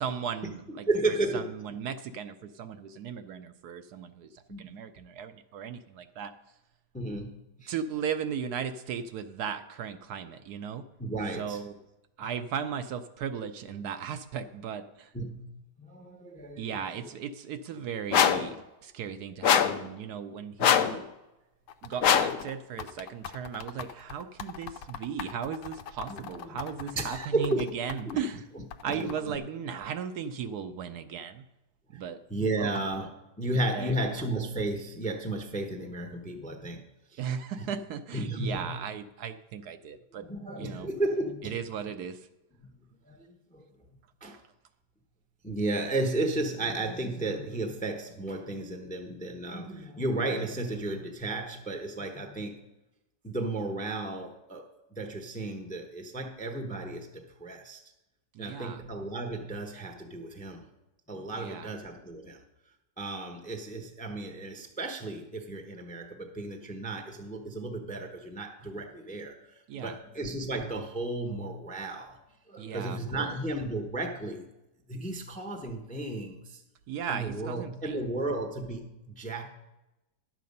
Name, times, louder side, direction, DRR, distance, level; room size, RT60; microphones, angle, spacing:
voice 1, 0.0-0.9 1.3-6.3 7.7-10.9 11.3-11.7 12.2-15.1 16.6-18.6 18.8-21.0 21.8-28.5 28.8-31.4 31.9-32.2 32.5-32.7 33.5-34.3 37.2-40.3 40.6-40.9 41.4-42.3 58.3-58.9 61.3-61.7 69.7-70.0 72.6-73.3 76.9-78.0, right 7 dB, 70° right, 9 dB, 1.1 m, -36 dB
voice 2, 0.9-1.5 4.5-4.8 6.9-7.3 7.6-7.7 11.0-11.6 12.2-12.3 15.1-15.5 15.8-16.8 26.1-27.7 28.1-28.2 28.9-29.3 31.9-32.0 32.3-33.1 33.4-36.8 37.1-37.2 38.1-38.8 40.3-41.6 42.6-42.7 43.0-43.7 44.2-44.4 45.4-52.5 53.2-54.6 54.9-57.8 58.4-60.7 61.1-62.4 63.0-72.2 72.5-74.4 74.9-76.6 77.1-79.4, right 2 dB, 5° left, 5 dB, 0.6 m, -33 dB
sound 1, 18.1-18.5 19.4-19.8 20.6-21.0 22.0-22.4, left 8 dB, 65° left, 0.9 m, -22 dB
sound 2, 21.7-28.2 28.7-29.4, left 8 dB, 90° left, 1.3 m, -41 dB
11.0 x 7.6 x 5.3 m, 0.97 s
omnidirectional pair, 1.8 m